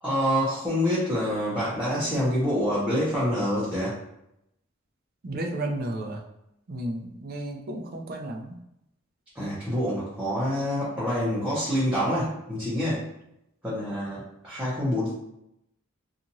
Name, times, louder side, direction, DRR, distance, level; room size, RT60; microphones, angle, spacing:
voice 1, 0.0-3.9 9.3-13.1 13.6-15.2, equal, 5° right, -10 dB, 0.7 m, -26 dB
voice 2, 5.2-6.2 6.7-8.6, right 1 dB, 50° right, 2 dB, 0.4 m, -33 dB
2.8 x 2.4 x 2.6 m, 0.82 s
head